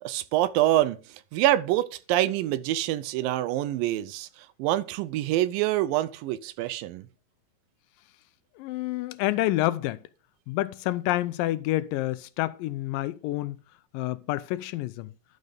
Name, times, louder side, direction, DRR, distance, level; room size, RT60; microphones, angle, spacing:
voice 1, 0.0-7.1, right 14 dB, 85° right, 2.3 m, -26 dB
voice 2, 8.6-10.0 10.5-13.6 13.9-15.1, left 16 dB, 80° left, 2.2 m, -28 dB
12.0 x 4.1 x 5.0 m
omnidirectional pair, 4.0 m